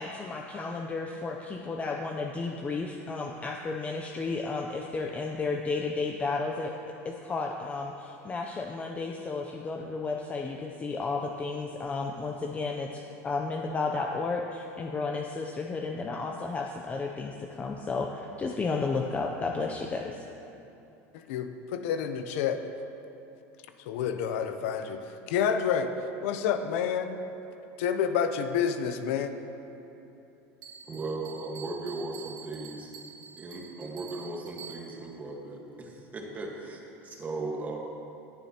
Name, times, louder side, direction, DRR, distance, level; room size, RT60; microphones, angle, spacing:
voice 1, 0.0-6.8 7.0-20.3, left 3 dB, 20° left, 2 dB, 0.5 m, -33 dB
voice 2, 21.1-22.6 23.9-25.9 26.2-27.2 27.8-29.3, left 7 dB, 75° left, 8 dB, 0.7 m, -29 dB
Bell, 30.6-35.1, right 7 dB, 55° right, 1.5 m, -47 dB
voice 3, 30.9-32.9 33.4-37.8, right 2 dB, 20° right, 0 dB, 1.4 m, -37 dB
21.0 x 7.3 x 2.9 m, 2.9 s
supercardioid pair, 135°, 7 cm